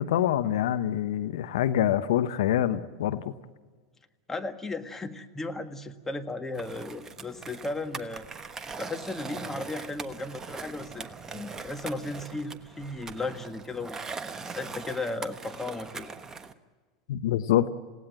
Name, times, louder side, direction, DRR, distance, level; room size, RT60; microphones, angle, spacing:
voice 1, 0.0-3.3 17.1-17.7, left 11 dB, 70° left, 12 dB, 0.9 m, -25 dB
voice 2, 4.3-8.3 8.8-11.1 11.3-14.0 14.5-16.1, left 2 dB, 10° left, 6 dB, 1.7 m, -35 dB
Skateboard, 6.5-16.5, right 4 dB, 20° right, 1.2 m, -41 dB
28.0 x 18.0 x 7.9 m, 1.5 s
hypercardioid pair, 90°, 3 cm